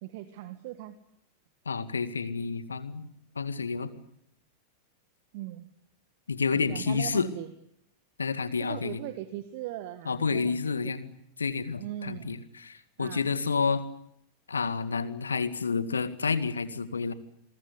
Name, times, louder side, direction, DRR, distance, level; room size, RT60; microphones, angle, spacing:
voice 1, 0.0-1.0 5.3-5.7 6.5-7.5 8.7-10.9 11.8-12.4 13.0-13.3, right 14 dB, 50° right, 12 dB, 1.7 m, -39 dB
voice 2, 1.7-3.1 3.4-3.9 6.3-7.3 8.2-9.0 10.1-11.1 11.4-13.8 14.5-17.1, left 5 dB, 75° left, 13 dB, 2.0 m, -29 dB
29.0 x 22.5 x 8.3 m, 0.77 s
figure-of-eight pair, 90°, 0 cm